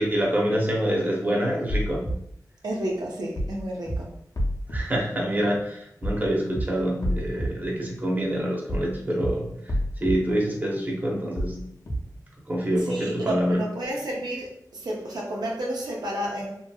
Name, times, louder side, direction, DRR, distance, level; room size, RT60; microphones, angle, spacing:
voice 1, 0.0-2.1 4.7-9.7 10.0-11.6 12.5-13.6, equal, 25° right, -2 dB, 0.7 m, -26 dB
sound 1, 1.7-2.1 3.4-3.6 3.9-4.0 4.4-4.8 6.0-6.2 6.5-6.6 7.0-7.5 8.7-8.9 9.2-9.3 9.7-10.1 11.4-11.6 11.9-12.0, equal, 55° left, 0.7 m, -28 dB
voice 2, 2.6-4.2 12.8-16.6, right 1 dB, 80° right, -2 dB, 0.6 m, -31 dB
2.8 x 2.6 x 2.3 m, 0.71 s
wide cardioid pair, 85°, 7 cm